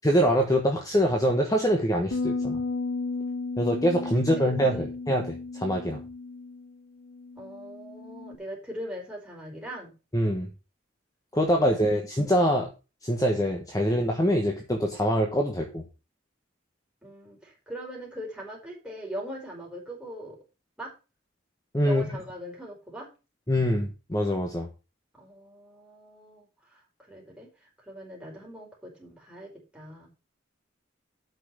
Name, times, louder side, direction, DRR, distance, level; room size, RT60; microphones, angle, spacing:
voice 1, 0.0-2.6 3.6-6.0 10.1-10.5 11.3-12.7 13.0-15.8 21.7-22.1 23.5-24.7, equal, 20° left, 2 dB, 1.3 m, -24 dB
sound 1, 2.1-8.4, left 3 dB, 60° left, 0.5 m, -34 dB
voice 2, 4.1-4.9 7.4-9.9 17.0-20.4 20.8-20.9 21.8-23.1 25.1-26.4 26.7-30.1, equal, 5° right, -3 dB, 4.9 m, -41 dB
8.7 x 6.1 x 6.2 m, 0.31 s
head